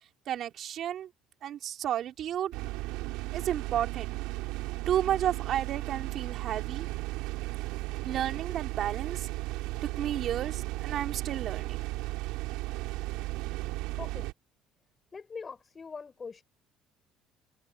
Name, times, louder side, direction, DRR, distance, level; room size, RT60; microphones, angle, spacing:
voice 1, 0.3-1.1 1.4-2.5 3.3-4.1 4.9-6.9 8.0-9.3 10.0-11.8, right 10 dB, 60° right, 3.5 m, -32 dB
sound 1, 2.5-14.3, right 20 dB, 85° right, 3.5 m, -35 dB
voice 2, 15.1-16.4, left 5 dB, 30° left, 7.8 m, -42 dB
cardioid pair, 105°, 0 cm